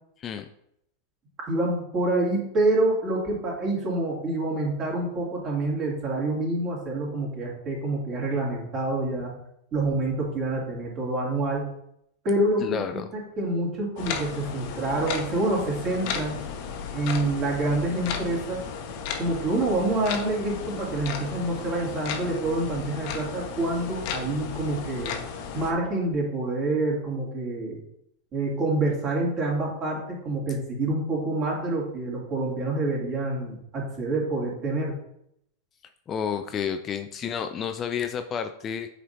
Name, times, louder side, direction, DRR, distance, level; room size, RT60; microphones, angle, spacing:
voice 1, 1.5-9.3 9.7-11.7 12.2-16.5 16.9-18.6 19.2-25.1 25.5-27.8 28.3-34.9, right 2 dB, 35° right, -3 dB, 2.4 m, -27 dB
voice 2, 12.6-13.1 36.1-38.9, left 7 dB, 25° left, 8 dB, 0.4 m, -30 dB
sound 1, 14.0-25.7, left 6 dB, 45° left, 0.9 m, -35 dB
8.3 x 4.2 x 2.7 m, 0.75 s
figure-of-eight pair, 90°, 0 cm